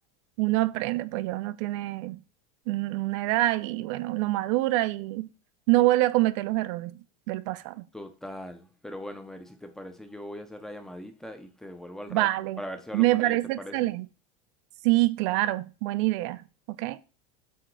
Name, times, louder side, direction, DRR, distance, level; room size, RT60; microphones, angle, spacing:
voice 1, 0.4-2.2 2.7-5.3 5.7-7.0 7.3-7.9 12.1-12.6 12.9-14.1 14.8-16.4 16.8-17.0, right 18 dB, 55° right, 0.4 m, -26 dB
voice 2, 7.9-12.3 12.6-13.9, equal, ahead, 0.5 m, -40 dB
7.7 x 2.8 x 4.6 m
supercardioid pair, 165°, 19 cm